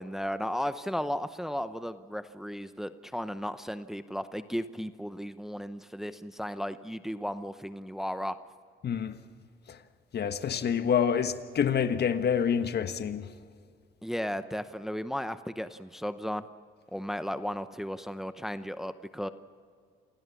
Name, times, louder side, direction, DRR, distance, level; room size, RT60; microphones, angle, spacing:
voice 1, 0.0-8.4 14.0-16.4 16.9-19.3, equal, ahead, 0.8 m, -35 dB
voice 2, 8.8-9.2 9.7-9.8 10.1-13.3, left 7 dB, 55° left, 1.4 m, -27 dB
28.0 x 17.5 x 7.1 m
cardioid pair, 90°, 20 cm